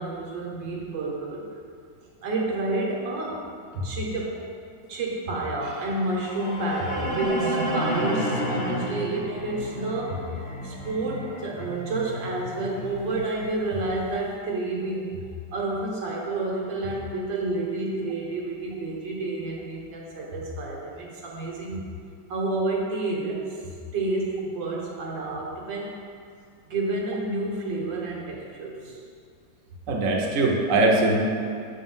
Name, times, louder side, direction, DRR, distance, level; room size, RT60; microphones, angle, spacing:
voice 1, 0.0-1.5 2.2-3.4 3.7-4.4 4.9-10.3 10.6-15.2 15.5-21.9 22.3-26.0 26.7-29.0, right 2 dB, 80° right, -1 dB, 1.7 m, -29 dB
sound 1, 6.0-14.1, equal, 45° left, 1.1 m, -32 dB
voice 2, 29.9-31.2, right 2 dB, 55° right, -1 dB, 1.0 m, -21 dB
6.3 x 4.1 x 5.5 m, 2.3 s
omnidirectional pair, 2.0 m